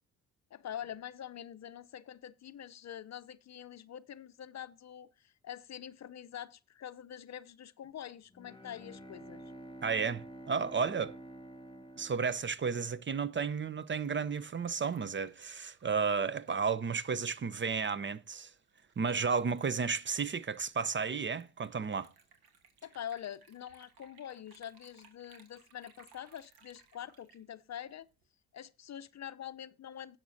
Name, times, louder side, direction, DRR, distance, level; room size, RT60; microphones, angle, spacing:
voice 1, 0.5-9.4 22.8-28.1 28.5-30.2, left 10 dB, 40° left, 0.7 m, -45 dB
Bowed string instrument, 8.3-13.2, right 1 dB, 10° left, 1.6 m, -50 dB
voice 2, 9.8-11.2 12.0-18.5 19.0-22.1, right 5 dB, 25° right, 0.7 m, -33 dB
Liquid, 13.8-28.2, right 5 dB, 60° right, 2.6 m, -64 dB
17.5 x 7.5 x 2.7 m
hypercardioid pair, 55°, 41 cm